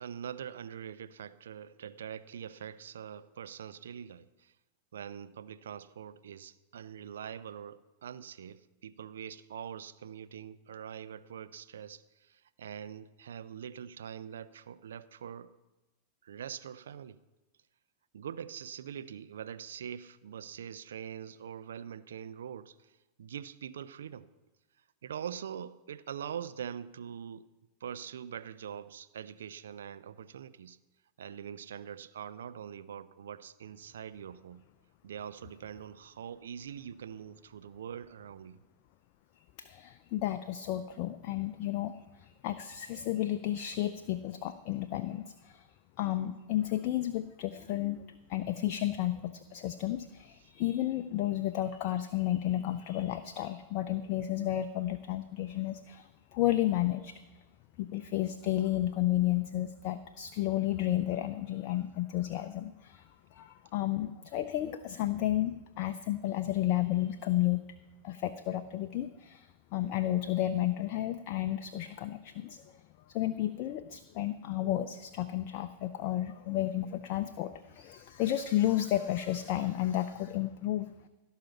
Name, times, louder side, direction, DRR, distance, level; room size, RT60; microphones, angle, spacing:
voice 1, 0.0-4.5 4.9-15.6 16.2-17.2 18.1-22.9 23.2-24.3 25.0-27.5 27.8-30.8 31.2-34.6 35.0-38.6, right 8 dB, 65° right, 0.4 m, -43 dB
voice 2, 39.6-45.7 46.0-57.2 57.8-67.6 68.0-72.8 73.1-80.9, left 13 dB, 45° left, 0.5 m, -32 dB
16.0 x 5.7 x 7.2 m
figure-of-eight pair, 90°, 0 cm